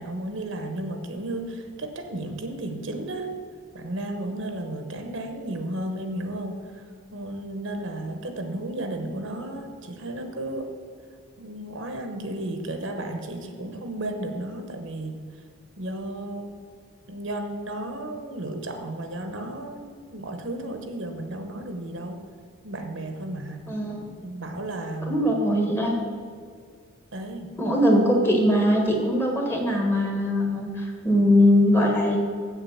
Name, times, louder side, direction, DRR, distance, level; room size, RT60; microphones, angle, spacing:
voice 1, 0.0-3.3 3.7-6.8 7.1-10.7 11.4-15.2 15.8-16.6 17.1-22.2 22.6-23.6 24.2-25.3 27.1-27.5, right 1 dB, 60° right, 6 dB, 1.0 m, -33 dB
voice 2, 23.7-24.1 25.1-25.9 27.6-32.2, left 1 dB, 10° left, 1 dB, 1.4 m, -21 dB
7.6 x 7.4 x 7.1 m, 2.1 s
head